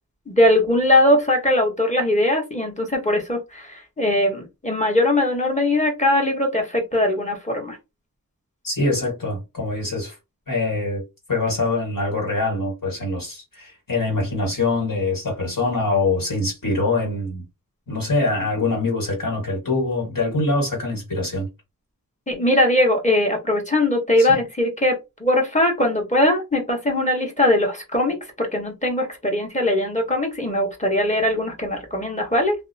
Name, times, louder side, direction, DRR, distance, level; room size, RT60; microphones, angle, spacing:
voice 1, 0.3-7.8 22.3-32.5, left 1 dB, 20° left, 1.0 m, -20 dB
voice 2, 8.6-10.2 10.5-11.0 11.3-17.4 17.9-21.5 24.2-24.4, left 2 dB, 65° left, 1.5 m, -24 dB
2.7 x 2.0 x 2.6 m
wide cardioid pair, 50°, 36 cm